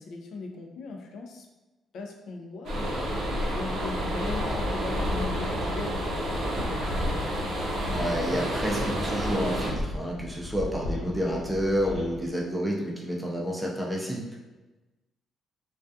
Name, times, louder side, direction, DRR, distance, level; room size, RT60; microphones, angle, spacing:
voice 1, 0.0-1.5 1.9-7.6 10.9-11.2, left 3 dB, 70° left, 2 dB, 0.4 m, -39 dB
sound 1, 2.6-9.7, right 1 dB, 65° right, 0.6 m, -30 dB
sound 2, 4.0-12.3, left 2 dB, 55° left, 1.0 m, -36 dB
voice 2, 7.9-14.2, equal, 10° right, -2 dB, 0.5 m, -29 dB
2.3 x 2.2 x 2.6 m, 1.1 s
cardioid pair, 90°, 0 cm